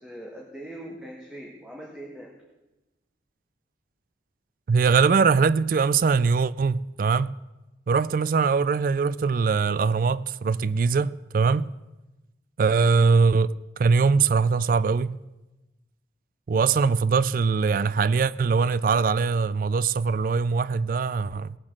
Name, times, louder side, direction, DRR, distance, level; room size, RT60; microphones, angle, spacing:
voice 1, 0.0-2.3, right 1 dB, 5° right, 1.5 m, -41 dB
voice 2, 4.7-7.3 7.9-11.7 12.6-15.2 16.5-21.6, right 5 dB, 50° right, 0.3 m, -22 dB
18.0 x 7.3 x 6.4 m
head